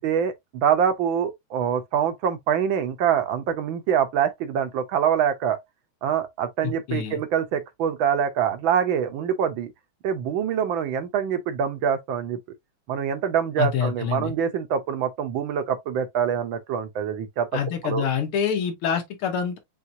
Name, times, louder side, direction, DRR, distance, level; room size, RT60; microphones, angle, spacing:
voice 1, 0.0-5.6 6.0-9.7 10.0-12.4 12.9-17.5 17.8-18.0, right 8 dB, 70° right, 1.5 m, -25 dB
voice 2, 6.6-7.2 13.6-14.3 17.5-19.6, left 7 dB, 85° left, 2.1 m, -26 dB
5.7 x 2.7 x 2.6 m
omnidirectional pair, 2.3 m